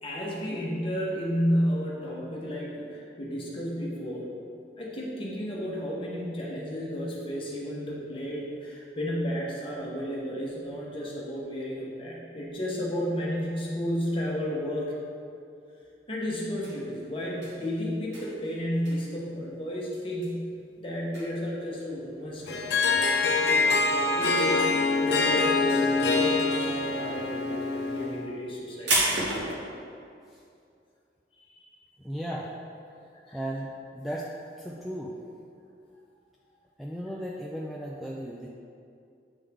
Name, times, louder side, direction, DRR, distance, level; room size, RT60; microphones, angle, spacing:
voice 1, 0.0-4.3 4.8-14.9 16.1-20.5 20.8-22.7 23.2-23.6 23.8-24.6 25.0-29.0 31.4-31.6 33.3-33.4, equal, 30° left, -4 dB, 1.1 m, -32 dB
sound 1, 16.6-24.4 24.7-25.4 25.6-29.6, right 2 dB, 85° right, 1.4 m, -33 dB
Harp, 22.5-28.3, left 3 dB, 65° left, 0.5 m, -25 dB
voice 2, 32.0-32.5 33.3-34.3 34.6-35.2 36.8-38.5, equal, ahead, -5 dB, 0.3 m, -35 dB
8.2 x 3.6 x 3.5 m, 2.5 s
head